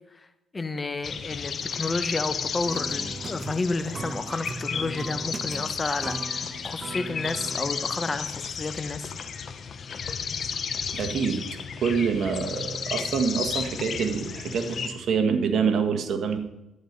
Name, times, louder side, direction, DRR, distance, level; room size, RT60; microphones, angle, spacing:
voice 1, 0.5-9.1, left 3 dB, 25° left, 10 dB, 1.1 m, -31 dB
sound 1, 1.0-14.9, left 6 dB, 50° left, 1.0 m, -33 dB
sound 2, 2.7-8.2, right 4 dB, 35° right, 0.7 m, -39 dB
voice 2, 10.9-11.4 11.8-16.4, right 6 dB, 60° right, 6 dB, 1.6 m, -26 dB
12.0 x 9.6 x 5.3 m, 0.93 s
cardioid pair, 90°, 0 cm